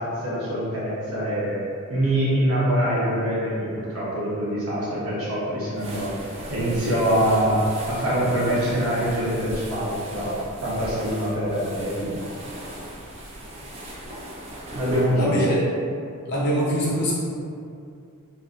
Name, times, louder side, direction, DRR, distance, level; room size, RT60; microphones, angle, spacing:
voice 1, 0.0-1.6 1.9-6.1 6.5-7.6 7.9-10.3 10.6-12.3 14.7-15.4, right 1 dB, 65° right, -9 dB, 0.9 m, -24 dB
sound 1, 5.7-15.5, right 1 dB, 30° right, 0.4 m, -38 dB
voice 2, 15.2-15.6 16.3-17.1, equal, 50° left, -6 dB, 0.6 m, -23 dB
2.5 x 2.5 x 2.4 m, 2.4 s
head